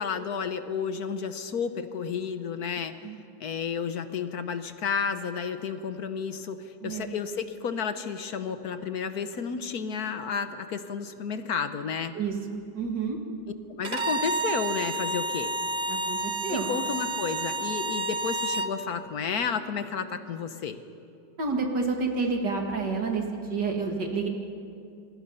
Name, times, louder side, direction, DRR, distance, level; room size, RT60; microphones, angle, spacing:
voice 1, 0.0-2.9 3.4-12.1 13.8-15.5 16.5-20.8, left 6 dB, 55° left, 9 dB, 1.3 m, -31 dB
voice 2, 6.8-7.1 12.1-13.2 15.9-16.7 21.4-24.3, right 4 dB, 60° right, 2 dB, 2.6 m, -29 dB
Bowed string instrument, 13.8-18.7, right 2 dB, 40° right, 0.8 m, -30 dB
27.0 x 22.5 x 5.6 m, 2.5 s
omnidirectional pair, 2.2 m